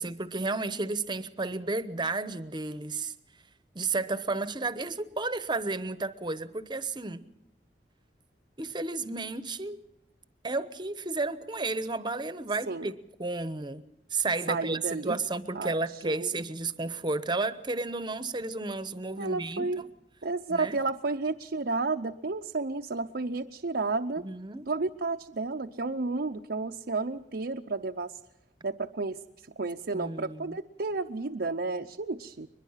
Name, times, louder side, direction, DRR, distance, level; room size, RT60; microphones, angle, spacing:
voice 1, 0.0-3.1 3.7-7.2 8.6-9.8 10.4-19.7 20.5-20.8 24.2-24.6 29.9-30.6, right 3 dB, 25° right, 1.0 m, -32 dB
voice 2, 14.5-15.2 15.5-15.7 16.0-16.4 19.2-19.8 20.2-24.2 24.7-28.2 28.6-29.2 29.6-32.5, right 3 dB, 65° right, 0.7 m, -32 dB
22.5 x 21.5 x 5.8 m
head